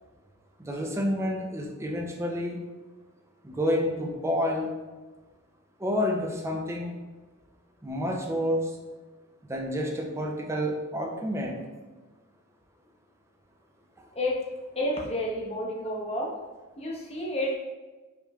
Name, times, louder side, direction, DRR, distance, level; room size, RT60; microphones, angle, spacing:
voice 1, 0.6-2.6 3.4-4.7 5.8-6.9 7.8-8.7 9.5-11.6, equal, 15° right, 0 dB, 0.5 m, -29 dB
voice 2, 14.8-16.3 16.8-17.6, left 1 dB, 30° left, -2 dB, 0.7 m, -30 dB
5.1 x 3.0 x 2.3 m, 1.2 s
head